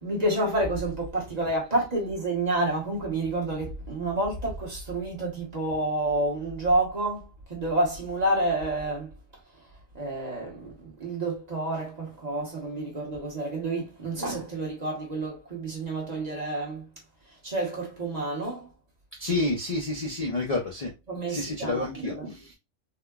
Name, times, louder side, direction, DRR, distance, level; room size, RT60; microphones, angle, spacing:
voice 1, 0.0-9.1 9.9-16.9 17.3-18.7 21.1-22.5, right 2 dB, 35° right, 1.1 m, -29 dB
voice 2, 19.2-20.9 21.3-22.5, left 2 dB, 45° left, 0.5 m, -29 dB
3.6 x 2.1 x 2.3 m
omnidirectional pair, 1.2 m